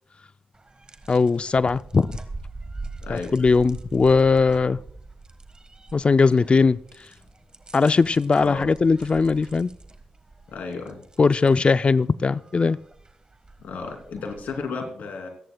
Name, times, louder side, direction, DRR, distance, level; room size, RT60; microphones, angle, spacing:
sound 1, 0.5-14.7, right 3 dB, 30° right, 1.4 m, -43 dB
voice 1, 1.1-2.2 3.1-4.8 5.9-6.8 7.7-9.7 11.2-12.8, left 4 dB, 40° left, 0.4 m, -19 dB
voice 2, 10.5-11.0 13.6-15.3, left 4 dB, 75° left, 2.9 m, -33 dB
27.0 x 10.5 x 2.3 m
supercardioid pair, 50°, 3 cm